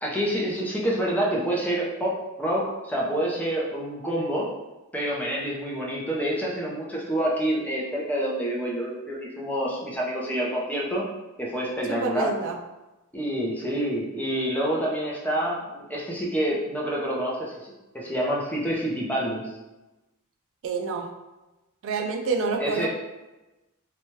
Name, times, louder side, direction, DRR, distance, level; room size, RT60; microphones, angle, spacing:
voice 1, 0.0-4.5 4.9-11.1 11.4-12.3 13.1-19.5 22.6-22.9, right 1 dB, 5° left, -4 dB, 0.5 m, -27 dB
voice 2, 11.9-12.6 20.6-21.1 21.8-22.9, right 4 dB, 60° right, 2 dB, 0.3 m, -28 dB
2.7 x 2.2 x 3.0 m, 1.0 s
head